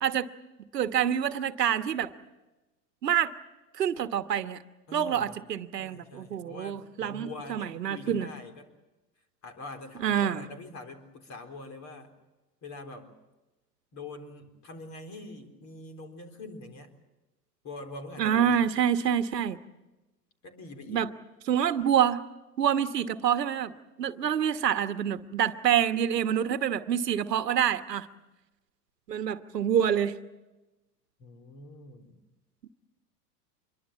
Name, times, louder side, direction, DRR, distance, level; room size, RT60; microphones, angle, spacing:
voice 1, 0.7-2.1 3.0-3.3 3.8-4.6 4.9-8.3 10.0-10.4 18.2-19.6 20.9-21.1 21.5-22.2 22.6-28.1 29.1-30.2, right 9 dB, 80° right, 11 dB, 1.3 m, -27 dB
voice 2, 4.9-5.4 5.8-8.7 9.4-12.1 12.6-13.1 13.9-16.9 17.6-18.6 20.4-21.1 31.2-32.2, left 2 dB, 35° left, 7 dB, 4.0 m, -44 dB
25.5 x 22.5 x 7.3 m, 1.1 s
hypercardioid pair, 95°, 48 cm